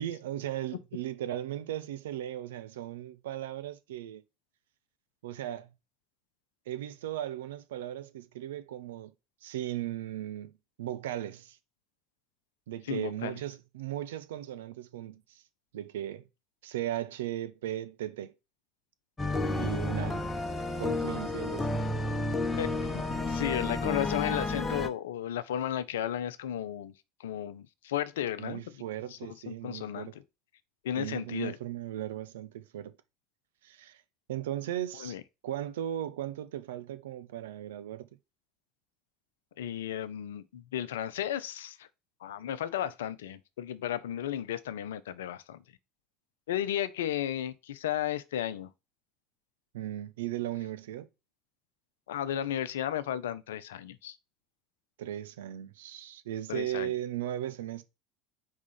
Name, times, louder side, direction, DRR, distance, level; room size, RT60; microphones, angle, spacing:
voice 1, 0.0-4.2 5.2-5.7 6.7-9.1 9.4-10.5 10.8-11.6 12.7-15.4 15.7-16.3 16.6-18.3 19.6-20.2 20.8-21.7 28.4-30.1 31.0-32.9 33.6-34.0 34.3-35.2 35.4-38.1 49.7-51.1 55.0-57.8, right 12 dB, 65° right, 0.5 m, -37 dB
voice 2, 12.9-13.4 22.6-26.9 27.2-28.8 29.1-29.2 29.5-30.1 30.8-31.6 35.0-35.2 39.6-41.9 42.2-45.6 46.5-48.7 52.1-54.2 56.5-56.9, left 11 dB, 70° left, 0.5 m, -34 dB
sound 1, 19.2-24.9, left 2 dB, 20° left, 0.9 m, -31 dB
4.8 x 3.7 x 5.6 m
figure-of-eight pair, 70°, 0 cm